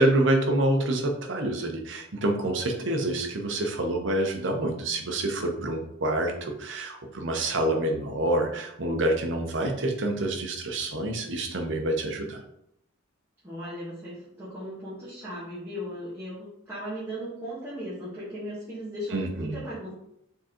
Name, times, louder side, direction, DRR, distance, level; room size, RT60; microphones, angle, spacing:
voice 1, 0.0-12.4 19.1-19.6, right 1 dB, 60° right, 2 dB, 0.7 m, -27 dB
voice 2, 13.4-19.9, equal, 10° right, -12 dB, 1.4 m, -37 dB
4.4 x 3.7 x 3.0 m, 0.77 s
head